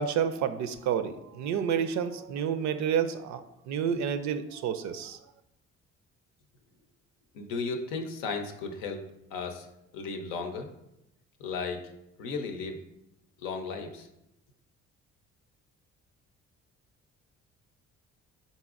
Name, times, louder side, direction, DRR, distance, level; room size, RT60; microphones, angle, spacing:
voice 1, 0.0-3.4 3.7-5.2, right 8 dB, 60° right, 10 dB, 0.4 m, -29 dB
voice 2, 7.3-9.0 9.3-9.7 9.9-10.7 11.4-11.8 12.2-12.8 13.4-14.1, left 4 dB, 85° left, 5 dB, 0.6 m, -35 dB
4.1 x 3.9 x 2.4 m, 0.84 s
supercardioid pair, 60°, 32 cm